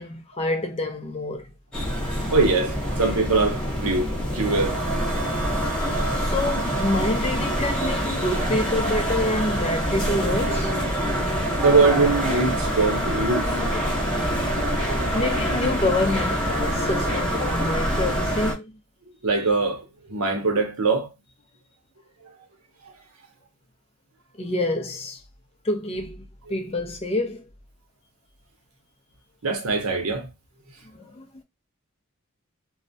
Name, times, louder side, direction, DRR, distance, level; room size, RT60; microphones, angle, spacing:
voice 1, 0.0-1.5 6.2-10.7 15.1-18.8 24.4-25.2 25.6-27.5 30.9-31.2, left 2 dB, 30° left, 0.4 m, -27 dB
sound 1, 1.7-18.5, equal, 5° left, 0.7 m, -25 dB
voice 2, 2.3-4.8 11.6-13.5 14.8-14.9 19.2-19.8 20.1-21.1 29.4-30.3, right 3 dB, 90° right, 0.8 m, -22 dB
2.3 x 2.0 x 2.6 m
head